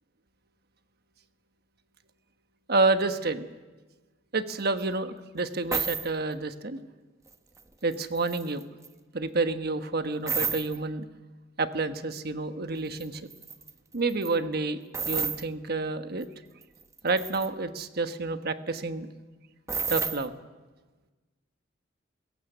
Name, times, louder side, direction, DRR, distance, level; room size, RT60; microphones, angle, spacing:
voice 1, 2.7-3.5 4.3-6.8 7.8-8.6 9.1-11.0 11.6-13.3 13.9-14.8 15.1-16.3 17.0-19.1 19.9-20.3, right 3 dB, 55° right, 9 dB, 1.2 m, -29 dB
sound 1, 4.8-4.9 5.7-6.1 7.3-7.6 7.9-8.9 10.3-10.8 13.0-13.1 13.3-13.7 14.1-14.3 14.9-15.4 16.2-16.3 16.6-17.5 19.7-20.3, right 5 dB, 15° right, 0.9 m, -31 dB
22.0 x 18.0 x 8.0 m, 1.3 s
head